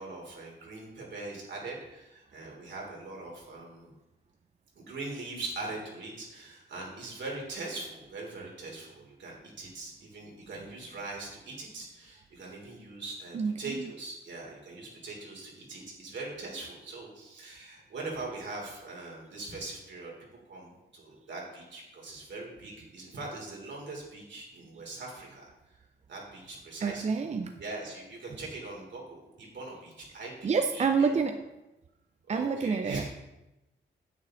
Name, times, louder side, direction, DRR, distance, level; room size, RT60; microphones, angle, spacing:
voice 1, 0.0-3.9 4.8-20.1 20.5-25.8 26.1-31.2 32.3-33.1, right 2 dB, 70° right, -2 dB, 3.3 m, -41 dB
voice 2, 13.3-13.9 26.8-27.5 30.4-31.5 32.3-33.1, right 5 dB, 35° right, 7 dB, 0.5 m, -28 dB
9.5 x 8.4 x 3.8 m, 0.98 s
wide cardioid pair, 115°, 20 cm